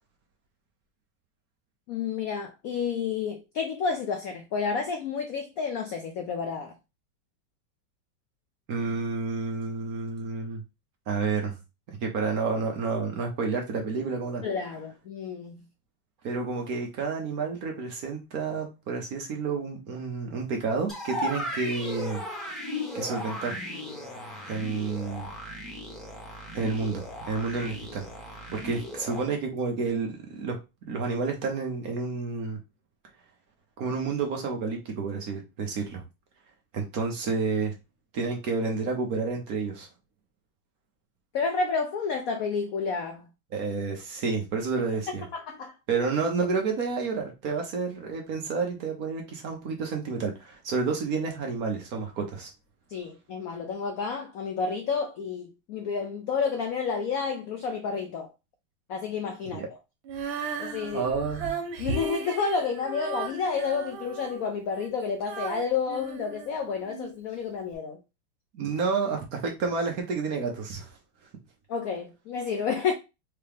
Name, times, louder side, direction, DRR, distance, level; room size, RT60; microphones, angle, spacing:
voice 1, 1.9-6.7 14.4-15.7 41.3-43.3 45.3-45.7 52.9-58.3 58.9-59.6 60.6-61.0 61.8-68.0 71.7-72.9, left 5 dB, 85° left, 0.7 m, -30 dB
voice 2, 8.7-10.6 11.1-11.6 12.0-14.4 16.2-22.2 22.9-23.6 24.5-25.3 26.5-28.1 28.5-30.6 30.9-32.6 33.8-36.0 36.7-37.7 38.1-39.9 43.5-45.2 45.9-52.5 59.5-59.7 60.9-61.6 68.5-70.9, right 4 dB, 55° right, 1.1 m, -30 dB
sound 1, 20.9-29.2, left 1 dB, ahead, 1.0 m, -36 dB
Female singing, 60.0-67.1 67.7-67.8, right 4 dB, 85° right, 1.8 m, -36 dB
4.6 x 2.9 x 3.4 m
omnidirectional pair, 2.2 m